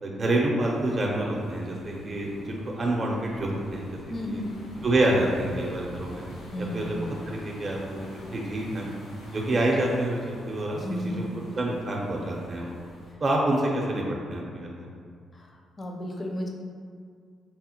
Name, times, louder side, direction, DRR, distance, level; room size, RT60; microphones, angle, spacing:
voice 1, 0.0-4.0 4.3-4.4 4.8-6.2 6.6-7.0 7.3-8.9 9.3-10.8 11.0-12.8 13.2-14.9, right 1 dB, 40° right, -2 dB, 0.5 m, -27 dB
sound 1, 0.6-13.1, left 1 dB, 80° left, 0.7 m, -46 dB
voice 2, 4.1-4.5 6.5-7.1 10.7-11.3 15.3-15.5 15.8-16.5, equal, 40° left, 1 dB, 0.5 m, -33 dB
4.0 x 2.1 x 2.8 m, 2.1 s
cardioid pair, 70°, 0 cm